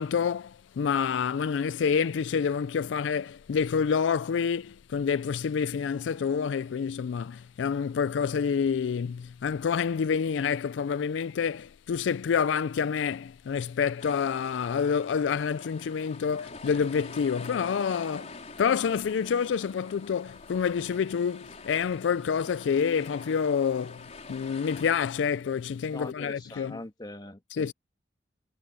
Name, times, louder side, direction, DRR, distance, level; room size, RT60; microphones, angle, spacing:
voice 1, 0.0-26.8 27.5-27.7, left 6 dB, 85° left, 0.4 m, -28 dB
sound 1, 14.0-24.9, left 3 dB, 40° left, 4.4 m, -46 dB
voice 2, 25.9-27.7, left 2 dB, 25° left, 1.8 m, -42 dB
head